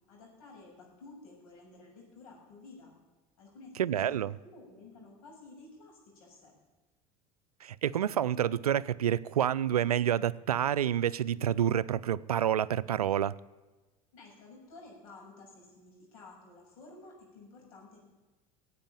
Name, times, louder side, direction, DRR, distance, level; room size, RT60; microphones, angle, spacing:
voice 1, 0.1-2.9 3.4-6.5 14.1-18.0, left 3 dB, 70° left, 6.6 m, -53 dB
voice 2, 3.8-4.3 7.6-13.3, right 10 dB, 90° right, 0.4 m, -28 dB
17.0 x 8.3 x 8.8 m
hypercardioid pair, 75°, 19 cm